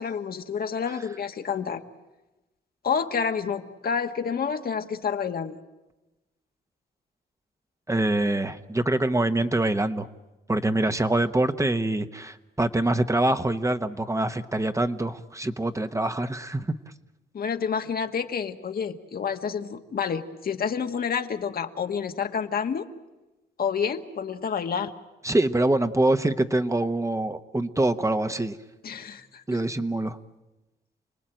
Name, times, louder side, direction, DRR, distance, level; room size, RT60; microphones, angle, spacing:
voice 1, 0.0-1.8 2.8-5.6 17.3-22.9 23.6-24.9 28.8-29.6, left 6 dB, 60° left, 7 dB, 1.6 m, -29 dB
voice 2, 7.9-10.1 10.5-16.7 25.2-28.6 29.5-30.2, right 2 dB, 15° right, 9 dB, 1.2 m, -25 dB
29.5 x 19.5 x 9.1 m, 1.1 s
cardioid pair, 75°, 18 cm